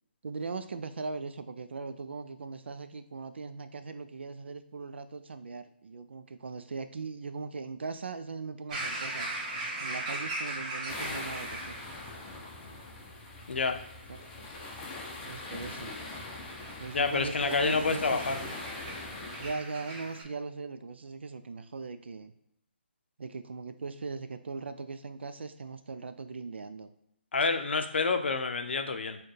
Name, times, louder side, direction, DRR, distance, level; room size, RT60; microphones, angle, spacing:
voice 1, 0.2-9.5 9.8-11.8 14.1-14.2 15.2-15.9 16.8-18.5 19.4-22.3 23.2-26.9, right 4 dB, 75° right, 9 dB, 0.4 m, -39 dB
sound 1, 8.7-12.1 16.6-20.2, right 2 dB, 35° right, 1.1 m, -39 dB
sound 2, 10.9-19.5, left 2 dB, 20° left, 0.5 m, -42 dB
voice 2, 13.5-13.8 16.9-18.4 27.3-29.2, left 4 dB, 75° left, 7 dB, 0.5 m, -28 dB
4.3 x 2.2 x 3.2 m, 0.79 s
hypercardioid pair, 150°, 6 cm